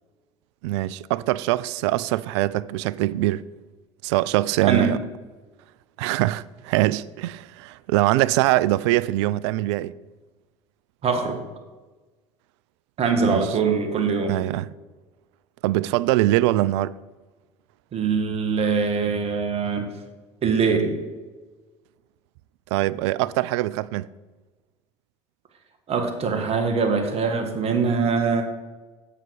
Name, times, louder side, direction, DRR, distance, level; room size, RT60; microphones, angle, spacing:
voice 1, 0.6-3.4 4.0-5.0 6.0-10.0 13.2-13.5 14.3-14.7 15.6-16.9 22.7-24.1, right 16 dB, 75° right, 0.4 m, -23 dB
voice 2, 4.6-4.9 11.0-11.4 13.0-14.4 17.9-19.8 20.4-21.0 25.9-28.4, right 5 dB, 45° right, 1.9 m, -23 dB
9.8 x 8.0 x 4.8 m
hypercardioid pair, 70°, 15 cm